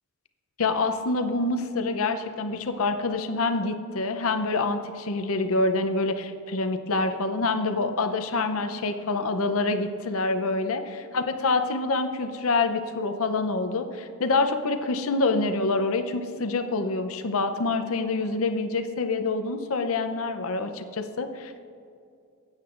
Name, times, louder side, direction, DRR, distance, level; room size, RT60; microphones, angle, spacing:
voice 1, 0.6-21.7, left 3 dB, 65° left, 8 dB, 0.6 m, -26 dB
15.5 x 8.9 x 2.5 m, 2.4 s
head